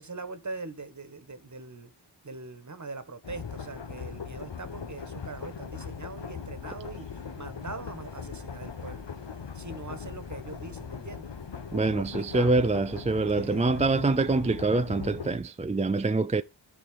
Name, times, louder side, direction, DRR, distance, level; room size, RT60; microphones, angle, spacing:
voice 1, 0.0-1.9 2.2-7.1 7.4-9.0 9.5-11.3 12.0-12.6 13.3-14.3, right 3 dB, 35° right, 1.5 m, -42 dB
sound 1, 3.2-15.4, left 6 dB, 60° left, 1.3 m, -40 dB
voice 2, 11.7-16.4, right 3 dB, 15° right, 0.4 m, -25 dB
13.5 x 4.6 x 3.7 m
cardioid pair, 50°, 47 cm